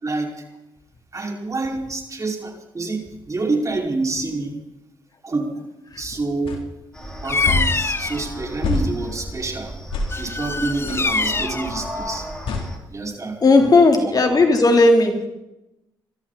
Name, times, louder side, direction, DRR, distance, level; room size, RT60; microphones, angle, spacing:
voice 1, 0.0-0.4 1.1-4.6 5.2-5.7 6.0-6.7 7.2-9.7 10.2-12.3 12.9-13.4 14.0-14.1, right 3 dB, 35° right, 1 dB, 5.4 m, -27 dB
sound 1, 6.4-6.6 7.4-7.7 8.6-8.9 9.9-10.1 10.9-11.1 12.5-12.7, left 3 dB, 75° left, 3.5 m, -23 dB
sound 2, 6.9-12.8, equal, 10° left, 7.7 m, -34 dB
Bird vocalization bird call bird song, 7.2-8.2 10.1-11.7, left 3 dB, 25° left, 0.9 m, -24 dB
voice 2, 13.4-15.3, left 3 dB, 45° left, 4 dB, 3.7 m, -15 dB
25.5 x 13.5 x 4.3 m, 0.91 s
supercardioid pair, 60°, 9 cm